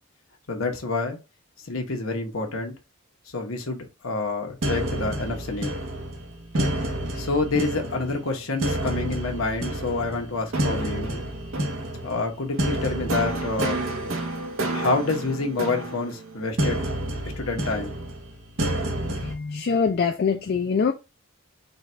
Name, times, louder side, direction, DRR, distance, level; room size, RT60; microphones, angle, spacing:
voice 1, 0.5-1.2 1.6-2.7 3.3-5.7 7.2-11.3 12.0-13.8 14.7-16.8 17.4-18.0, left 3 dB, 85° left, 1.0 m, -28 dB
sound 1, 4.6-19.3, right 1 dB, 80° right, 0.9 m, -29 dB
voice 2, 19.2-20.9, left 5 dB, 50° left, 0.3 m, -24 dB
3.9 x 2.3 x 4.2 m
head